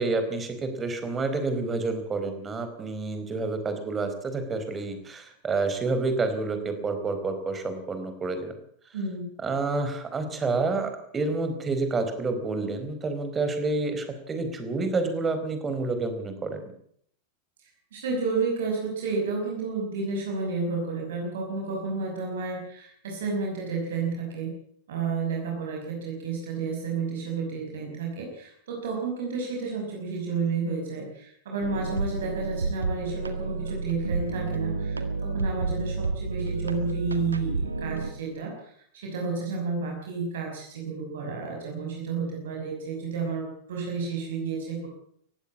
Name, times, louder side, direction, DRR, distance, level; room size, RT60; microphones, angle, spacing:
voice 1, 0.0-8.6 9.4-16.7, right 3 dB, 20° right, 8 dB, 4.4 m, -29 dB
voice 2, 8.9-9.3 17.6-24.6 24.9-44.9, right 4 dB, 60° right, 0 dB, 5.6 m, -31 dB
sound 1, 31.6-38.1, right 4 dB, 75° right, 2.0 m, -30 dB
19.5 x 15.5 x 8.5 m, 0.65 s
figure-of-eight pair, 90°, 0 cm